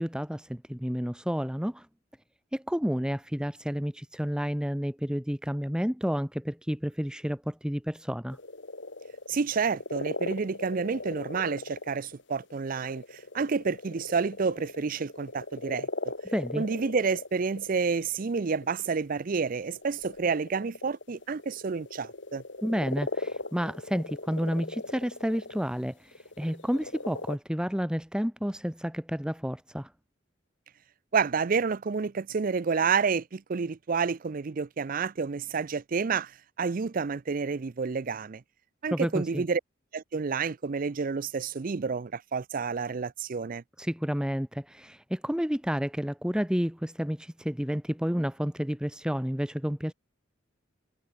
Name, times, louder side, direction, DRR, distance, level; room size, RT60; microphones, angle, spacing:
voice 1, 0.0-1.9 2.5-8.4 16.3-16.6 22.6-29.9 38.9-39.4 43.8-49.9, equal, 5° right, 1.2 m, -30 dB
sound 1, 8.3-19.0 19.5-25.7 26.1-27.4, left 2 dB, 65° left, 2.9 m, -39 dB
voice 2, 9.3-15.9 16.6-22.4 31.1-38.4 38.8-39.6 39.9-43.6, right 5 dB, 45° right, 0.5 m, -29 dB
head